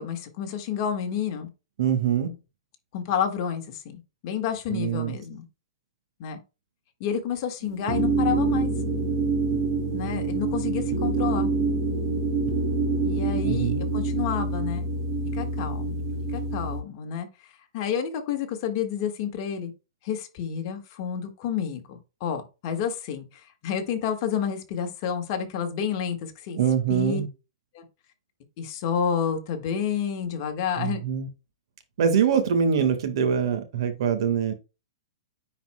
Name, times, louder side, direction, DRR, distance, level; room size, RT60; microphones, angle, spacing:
voice 1, 0.0-1.5 2.9-5.4 6.2-6.4 7.0-8.7 9.9-11.5 13.0-14.9 15.3-16.1 16.3-17.5 17.7-19.7 20.0-27.2 28.6-31.0, left 8 dB, 40° left, 1.6 m, -30 dB
voice 2, 1.8-2.3 4.7-5.2 13.4-13.8 26.6-27.3 30.8-31.3 32.0-34.5, right 7 dB, 60° right, 1.6 m, -24 dB
sound 1, 7.6-16.8, right 3 dB, 40° right, 2.0 m, -26 dB
9.8 x 4.3 x 2.2 m
hypercardioid pair, 150°, 3 cm